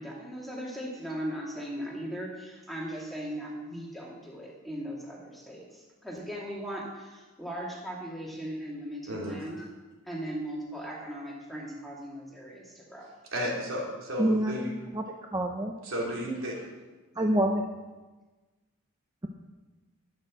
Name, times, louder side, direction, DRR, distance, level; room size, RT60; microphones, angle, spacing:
voice 1, 0.0-9.6 10.0-13.1, equal, ahead, -3 dB, 2.3 m, -38 dB
voice 2, 9.1-9.7 13.3-14.7 15.8-16.7, equal, 65° right, -3 dB, 3.4 m, -33 dB
voice 3, 14.2-14.6 14.9-15.0 15.3-15.8 17.2-17.6, right 1 dB, 15° right, 1 dB, 0.7 m, -26 dB
12.0 x 9.1 x 6.2 m, 1.2 s
head